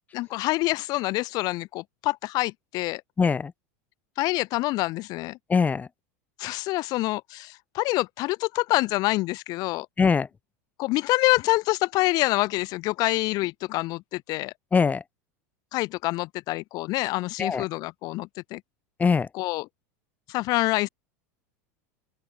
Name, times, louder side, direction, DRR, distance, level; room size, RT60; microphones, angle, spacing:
voice 1, 0.1-3.0 4.2-5.4 6.4-9.9 10.8-14.5 15.7-18.6 19.3-19.7 20.3-20.9, left 20 dB, 50° left, 5.5 m, -26 dB
voice 2, 3.2-3.5 5.5-5.9 10.0-10.3 14.7-15.0 17.4-17.6 19.0-19.3, left 5 dB, 20° left, 6.0 m, -22 dB
open air
supercardioid pair, 120°, 8 cm